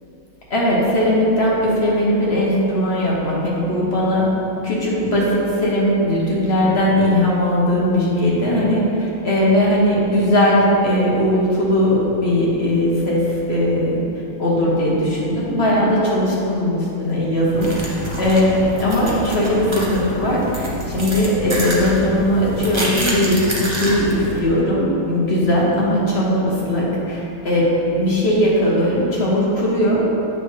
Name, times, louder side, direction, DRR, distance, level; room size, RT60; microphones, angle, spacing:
voice 1, 0.5-4.3 4.6-14.0 14.4-30.0, left 1 dB, 35° left, -5 dB, 1.2 m, -19 dB
sound 1, 17.5-24.4, equal, 45° right, 0.3 m, -27 dB
8.6 x 6.6 x 3.3 m, 2.9 s
omnidirectional pair, 2.3 m